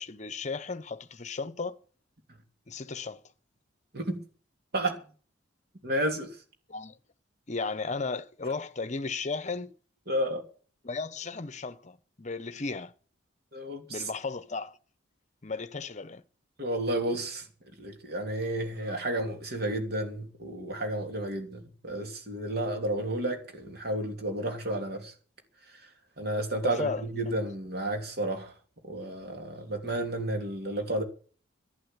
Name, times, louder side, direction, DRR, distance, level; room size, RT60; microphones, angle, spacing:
voice 1, 0.0-1.7 2.7-3.2 6.7-7.0 7.5-9.7 10.8-12.9 13.9-14.8 15.4-16.2 26.6-27.0, left 4 dB, 35° left, 0.8 m, -35 dB
voice 2, 5.8-6.4 10.1-10.4 13.5-14.1 16.6-17.5 17.8-25.1 26.2-28.5 28.8-31.0, right 1 dB, 55° right, 3.0 m, -31 dB
11.5 x 11.0 x 8.2 m
head